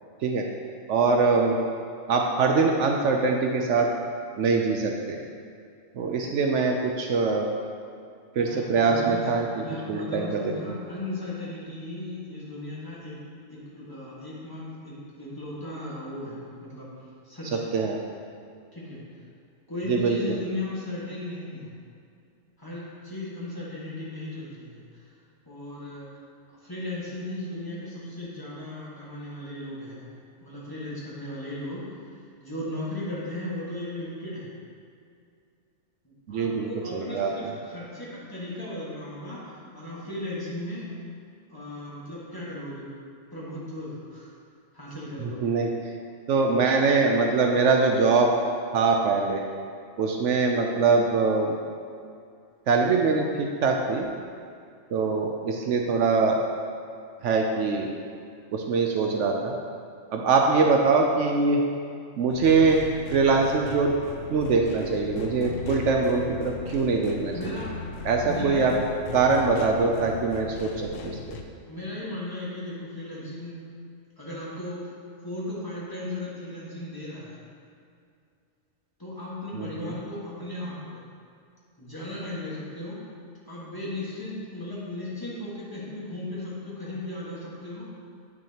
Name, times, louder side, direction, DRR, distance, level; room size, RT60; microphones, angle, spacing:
voice 1, 0.9-1.6 2.1-3.9 4.4-5.2 6.0-7.5 8.4-9.5 9.9-10.5 17.7-18.0 19.9-20.4 36.3-37.3 45.2-45.7 46.3-48.3 48.7-49.4 50.0-51.6 52.7-54.1 54.9-56.4 57.2-57.9 58.5-59.5 60.1-61.6 62.2-62.8 63.1-63.9 64.3-67.6 68.0-68.7 69.1-71.4 79.5-79.9, right 4 dB, 70° right, 1 dB, 0.9 m, -23 dB
voice 2, 8.3-13.2 13.5-16.9 17.2-17.7 18.7-19.0 19.7-21.7 22.6-25.1 25.5-26.1 26.5-30.1 30.4-34.5 36.0-40.9 41.5-42.9 43.3-44.4 44.7-45.5 67.3-67.7 68.2-68.7 71.6-73.6 74.2-74.9 75.2-77.4 79.0-81.0 81.8-83.0 83.5-87.9, left 1 dB, 15° left, -8 dB, 1.5 m, -36 dB
sound 1, 62.3-71.4, left 5 dB, 80° left, 0.9 m, -37 dB
8.8 x 6.2 x 2.9 m, 2.4 s
omnidirectional pair, 1.3 m